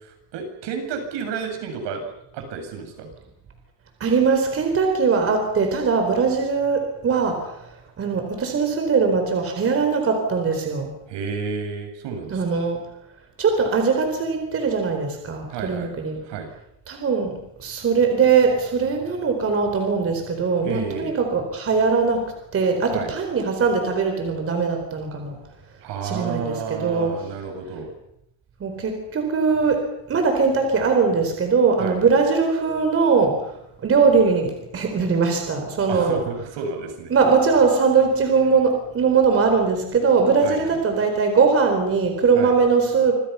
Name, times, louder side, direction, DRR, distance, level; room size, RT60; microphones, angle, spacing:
voice 1, 0.0-2.0 2.3-3.1 11.1-12.4 15.5-15.9 16.2-16.5 20.6-21.1 22.9-23.1 25.8-27.9 31.8-32.0 35.9-37.1 40.4-40.8 42.3-42.5, right 5 dB, 65° right, 5 dB, 7.4 m, -31 dB
voice 2, 4.0-10.9 12.3-12.8 13.4-16.2 16.9-25.4 26.0-27.2 28.6-36.3 37.1-43.1, right 5 dB, 30° right, 4 dB, 4.2 m, -21 dB
27.0 x 26.0 x 5.8 m, 0.77 s
cardioid pair, 155°, 45 cm